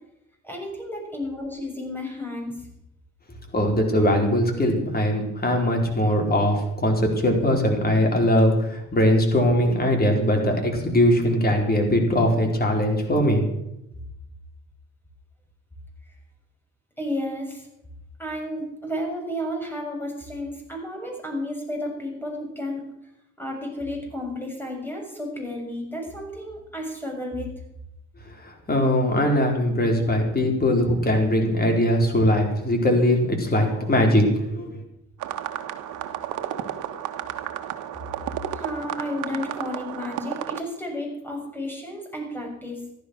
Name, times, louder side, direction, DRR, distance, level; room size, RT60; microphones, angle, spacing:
voice 1, 0.4-2.6 17.0-17.7 18.2-22.8 23.4-27.6 38.5-42.8, left 1 dB, 5° left, 1 dB, 6.9 m, -32 dB
voice 2, 3.5-13.4 28.7-34.8, left 1 dB, 30° left, 2 dB, 4.5 m, -21 dB
sound 1, 35.2-40.6, right 11 dB, 85° right, 1.4 m, -32 dB
14.5 x 12.0 x 6.3 m, 0.83 s
cardioid pair, 90°, 30 cm